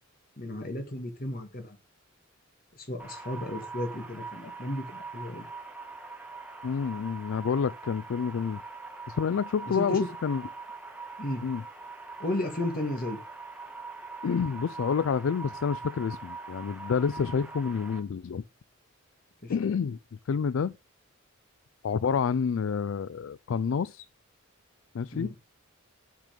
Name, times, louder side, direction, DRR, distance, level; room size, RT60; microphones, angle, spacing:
voice 1, 0.4-1.8 2.8-5.5 9.8-10.1 11.2-11.4 12.2-13.2 19.4-19.5 25.1-25.3, left 1 dB, 45° left, 1.9 m, -33 dB
sound 1, 3.0-18.0, right 4 dB, 5° right, 1.1 m, -42 dB
voice 2, 6.6-8.6 9.1-10.4 11.4-11.6 14.2-18.4 19.5-20.0 20.3-20.7 21.8-24.1 24.9-25.3, left 6 dB, 65° left, 0.3 m, -28 dB
6.8 x 6.3 x 5.1 m
head